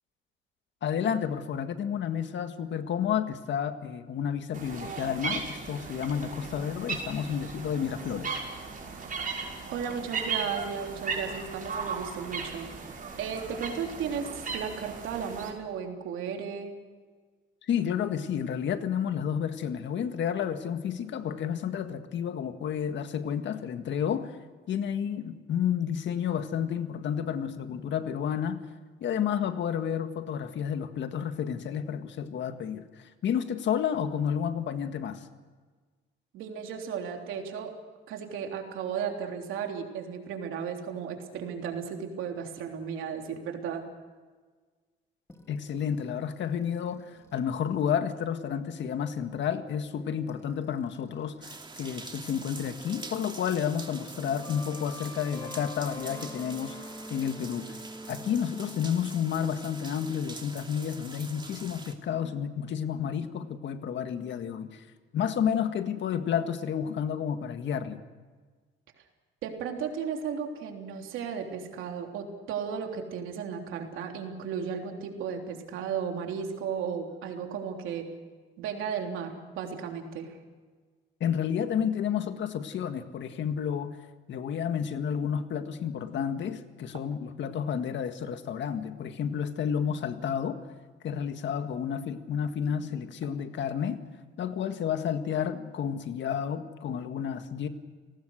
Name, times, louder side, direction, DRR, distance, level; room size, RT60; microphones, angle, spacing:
voice 1, 0.8-8.4 17.6-24.4 24.7-28.6 29.0-35.2 45.5-56.8 57.1-57.7 58.1-64.8 65.1-68.0 81.2-84.0 84.3-90.6 91.0-94.0 94.4-97.7, left 8 dB, 70° left, 8 dB, 1.8 m, -31 dB
sound 1, 4.5-15.5, right 5 dB, 45° right, 6.1 m, -36 dB
voice 2, 9.7-12.7 13.2-16.7 36.3-37.7 38.1-43.9 69.4-78.1 78.6-80.4, right 7 dB, 90° right, 3 dB, 3.4 m, -35 dB
sound 2, 45.3-52.5 52.8-59.2, equal, 15° left, 2.9 m, -48 dB
sound 3, 51.4-61.9, right 3 dB, 25° right, 2.8 m, -45 dB
29.5 x 19.0 x 6.5 m, 1.4 s
cardioid pair, 90°, 20 cm